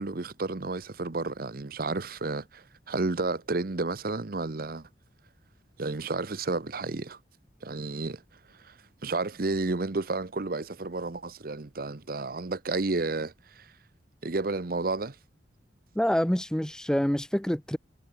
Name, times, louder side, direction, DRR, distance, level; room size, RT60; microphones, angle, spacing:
voice 1, 0.0-4.9 5.8-7.2 7.6-8.2 8.5-8.7 9.0-13.7 14.2-15.2, right 3 dB, 55° right, 0.8 m, -31 dB
voice 2, 16.0-17.8, equal, 5° left, 0.4 m, -26 dB
head